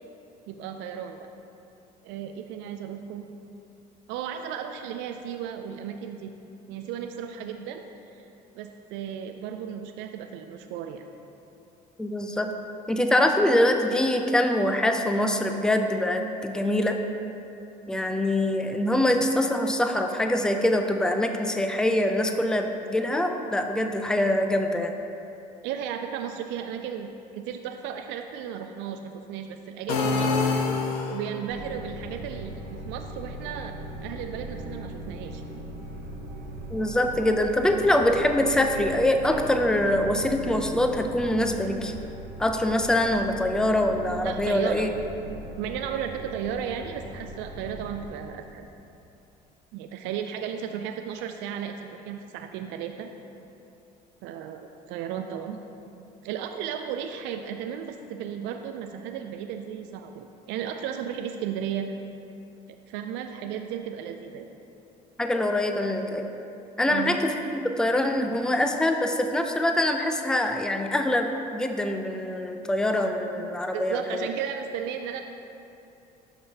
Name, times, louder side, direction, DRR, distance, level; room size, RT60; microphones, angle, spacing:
voice 1, 0.5-1.3 2.0-3.3 4.1-6.3 6.7-8.3 8.5-11.0 25.6-27.1 27.3-30.4 31.1-35.4 44.2-44.9 45.6-48.7 49.7-53.1 54.2-55.6 56.2-62.0 62.9-64.5 66.9-67.2 73.7-75.2, right 8 dB, 65° right, 6 dB, 0.4 m, -34 dB
voice 2, 12.0-12.5 12.9-17.0 17.9-24.9 36.7-41.9 42.4-44.9 65.2-66.3 66.8-67.3 67.8-74.3, left 1 dB, 5° left, 5 dB, 0.6 m, -24 dB
sound 1, 29.9-31.5, left 4 dB, 70° left, 0.7 m, -25 dB
sound 2, 31.5-48.1, right 1 dB, 80° right, 1.0 m, -39 dB
11.5 x 5.4 x 2.8 m, 2.8 s
hypercardioid pair, 55°, 21 cm